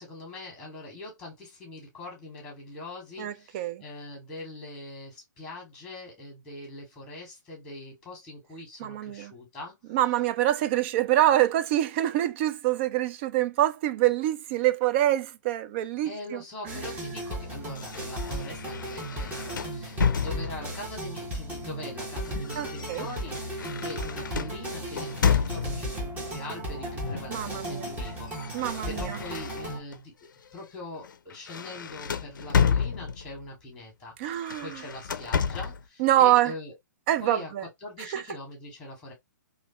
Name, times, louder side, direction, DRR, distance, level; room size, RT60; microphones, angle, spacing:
voice 1, 0.0-9.7 16.0-36.7 37.2-37.5 37.8-39.1, left 2 dB, 5° left, 1.8 m, -42 dB
voice 2, 3.2-3.8 8.8-9.3 9.9-16.8 22.6-23.1 27.3-27.9 28.5-29.2 34.2-34.8 36.0-36.5 37.1-37.7 38.0-38.2, right 13 dB, 35° right, 0.4 m, -25 dB
sound 1, 16.7-29.8, right 1 dB, 15° right, 1.5 m, -36 dB
sound 2, 17.7-20.8 21.8-26.0 27.0-27.4 27.7-30.0 30.5-30.7 31.0-33.4 34.3-35.8, left 6 dB, 80° left, 0.4 m, -31 dB
3.0 x 2.5 x 2.7 m
hypercardioid pair, 140°, 10 cm